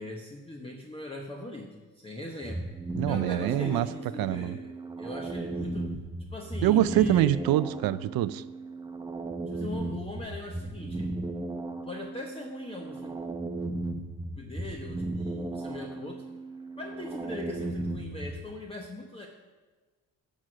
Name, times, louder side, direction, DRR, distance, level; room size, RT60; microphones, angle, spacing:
voice 1, 0.0-2.6 3.1-5.9 6.3-7.3 9.5-11.1 11.8-13.2 14.4-16.2 16.8-19.3, left 2 dB, 15° left, 1 dB, 0.9 m, -40 dB
sound 1, 2.4-18.5, right 2 dB, 10° right, 0.7 m, -36 dB
voice 2, 3.0-3.9 4.2-4.5 6.6-8.4, right 13 dB, 70° right, 16 dB, 0.5 m, -25 dB
10.5 x 6.3 x 6.2 m, 1.3 s
cardioid pair, 105°, 37 cm